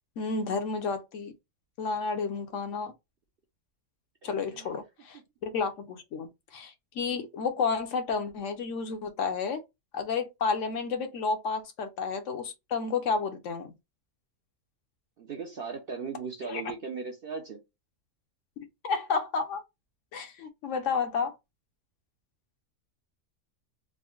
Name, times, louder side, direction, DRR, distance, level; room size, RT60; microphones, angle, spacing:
voice 1, 0.2-1.3 1.8-2.9 4.2-9.6 9.9-13.7 16.4-16.6 18.8-19.6 20.1-21.3, left 5 dB, 65° left, 1.0 m, -31 dB
voice 2, 4.2-4.7 15.2-17.6, right 5 dB, 55° right, 0.7 m, -38 dB
3.7 x 2.1 x 2.3 m
omnidirectional pair, 1.5 m